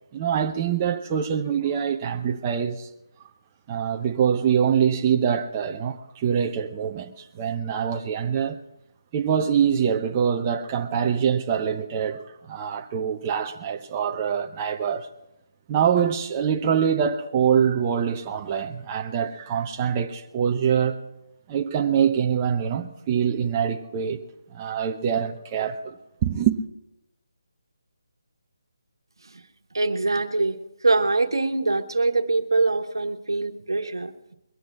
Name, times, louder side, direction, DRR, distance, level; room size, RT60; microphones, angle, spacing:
voice 1, 0.1-2.9 3.7-8.6 9.1-15.1 15.7-21.0 21.5-24.2 24.5-26.0 26.2-26.6, right 8 dB, 25° right, 0.8 m, -24 dB
voice 2, 29.7-30.6 30.8-34.3, right 3 dB, 85° right, 1.4 m, -23 dB
22.5 x 8.1 x 6.1 m
figure-of-eight pair, 155°, 2 cm